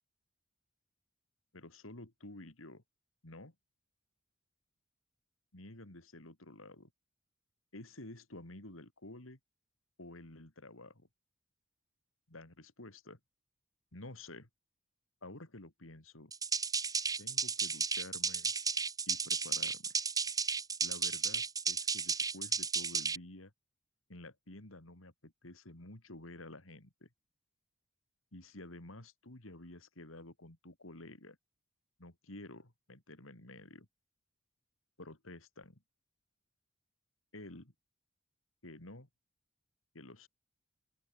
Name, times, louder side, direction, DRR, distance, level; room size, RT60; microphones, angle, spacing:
voice 1, 1.5-2.8 3.2-3.5 5.5-6.9 7.7-9.4 10.0-11.1 12.3-13.2 13.9-14.5 15.2-16.3 17.2-18.5 19.1-20.0 20.8-23.5 24.1-27.1 28.3-31.4 32.0-33.9 35.0-35.8 37.3-37.7 38.6-39.1 39.9-40.3, left 2 dB, 85° left, 3.7 m, -51 dB
sound 1, 16.3-23.2, right 5 dB, 20° right, 1.3 m, -33 dB
open air
head